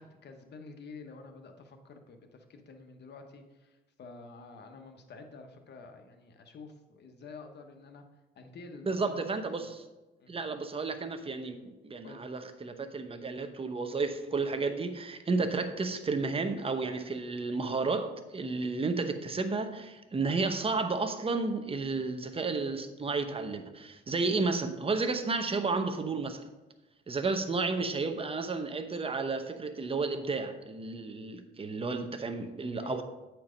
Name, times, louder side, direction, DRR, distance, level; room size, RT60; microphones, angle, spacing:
voice 1, 0.0-8.0 8.4-9.3 10.2-10.3 12.0-12.2 32.8-33.0, left 4 dB, 60° left, 1.1 m, -49 dB
voice 2, 8.9-9.8 10.3-26.5 27.1-33.0, right 3 dB, 30° right, 0.9 m, -32 dB
8.4 x 4.5 x 5.2 m
cardioid pair, 90°, 20 cm